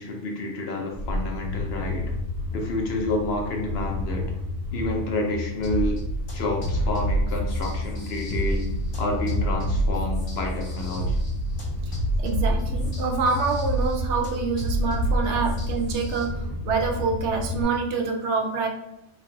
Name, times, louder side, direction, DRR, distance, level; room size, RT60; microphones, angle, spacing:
voice 1, 0.0-2.0 2.5-4.2 4.7-6.0 6.3-8.7 9.0-11.3 15.3-15.4, left 2 dB, 60° left, 1 dB, 0.9 m, -29 dB
sound 1, 0.9-17.6, left 2 dB, 30° left, 0.9 m, -32 dB
sound 2, 5.6-16.2, right 1 dB, 80° left, 1.5 m, -28 dB
voice 2, 12.2-18.7, right 4 dB, 70° right, 3 dB, 0.9 m, -26 dB
3.2 x 2.3 x 3.8 m, 0.87 s
omnidirectional pair, 1.3 m